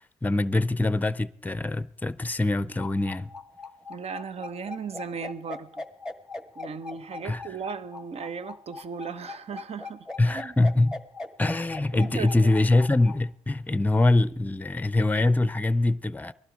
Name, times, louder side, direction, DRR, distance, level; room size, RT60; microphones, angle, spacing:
voice 1, 0.2-3.3 7.2-7.6 10.2-10.9 11.4-16.3, left 2 dB, 15° left, 0.6 m, -24 dB
sound 1, 2.8-13.2, left 3 dB, 5° right, 1.6 m, -39 dB
voice 2, 3.9-5.8 6.6-10.1 10.3-10.5 11.9-12.5, right 6 dB, 60° right, 1.0 m, -36 dB
19.0 x 12.0 x 5.1 m
supercardioid pair, 60°, 12 cm